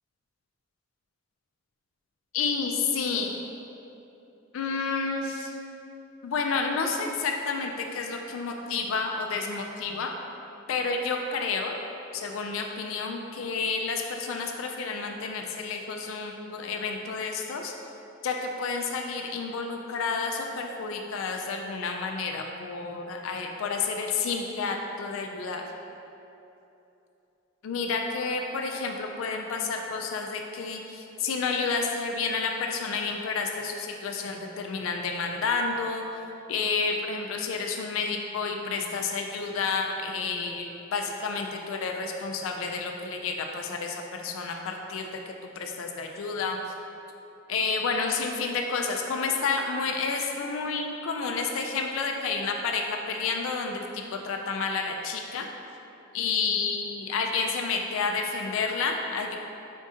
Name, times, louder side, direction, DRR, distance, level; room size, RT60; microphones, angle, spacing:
voice 1, 2.3-3.3 4.5-5.6 6.2-10.1 10.7-11.8 12.1-17.7 18.2-25.6 27.6-36.2 36.5-46.6 47.5-55.5 56.1-59.4, left 4 dB, 70° left, 2 dB, 0.3 m, -30 dB
5.2 x 2.7 x 3.6 m, 2.9 s
head